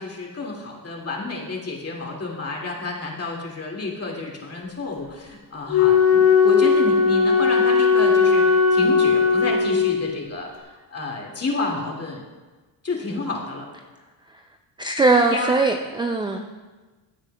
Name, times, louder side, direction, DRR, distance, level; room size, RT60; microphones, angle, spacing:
voice 1, 0.0-12.2 12.8-13.7 15.3-15.5 16.3-16.4, left 3 dB, 30° left, -1 dB, 2.3 m, -30 dB
Wind instrument woodwind instrument, 5.7-10.1, left 5 dB, 65° left, 2.4 m, -17 dB
voice 2, 14.8-16.4, right 3 dB, 10° right, 4 dB, 0.3 m, -20 dB
15.5 x 8.7 x 2.3 m, 1.3 s
cardioid pair, 100°, 50 cm